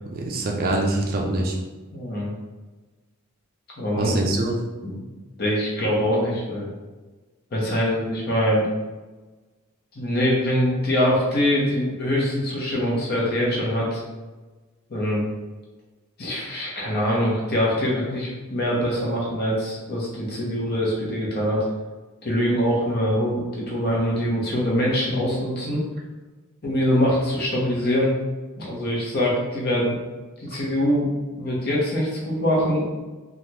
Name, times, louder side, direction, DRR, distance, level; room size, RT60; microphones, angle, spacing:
voice 1, 0.1-1.6 4.0-4.6, right 2 dB, 45° right, 1 dB, 0.4 m, -24 dB
voice 2, 1.9-2.3 3.8-4.1 4.8-5.0 5.4-6.7 7.5-8.7 9.9-14.0 14.9-15.3 16.2-21.6 22.2-25.9 26.6-28.1 28.6-30.0 30.4-31.1 31.4-32.8, equal, 45° left, -4 dB, 0.8 m, -23 dB
3.3 x 2.4 x 2.8 m, 1.2 s
head